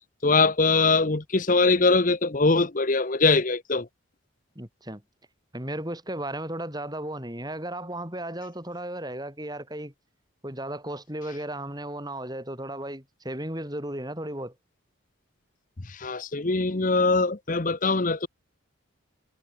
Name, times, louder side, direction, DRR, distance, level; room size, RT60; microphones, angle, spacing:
voice 1, 0.2-3.9 15.9-18.3, left 3 dB, 40° left, 0.9 m, -22 dB
voice 2, 4.6-5.0 5.5-9.9 10.4-14.5, right 1 dB, 20° right, 6.1 m, -35 dB
head